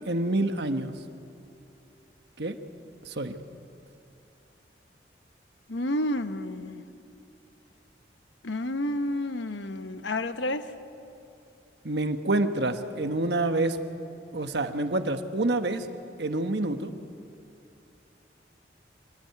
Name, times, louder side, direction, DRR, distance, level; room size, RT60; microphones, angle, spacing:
voice 1, 0.1-0.9 2.4-2.6 3.0-3.3 11.8-13.8 14.3-15.9 16.2-16.9, right 2 dB, 70° right, 7 dB, 1.2 m, -27 dB
voice 2, 5.7-6.8 8.4-10.7, left 1 dB, 90° left, 9 dB, 1.1 m, -30 dB
25.0 x 15.5 x 9.4 m, 2.7 s
head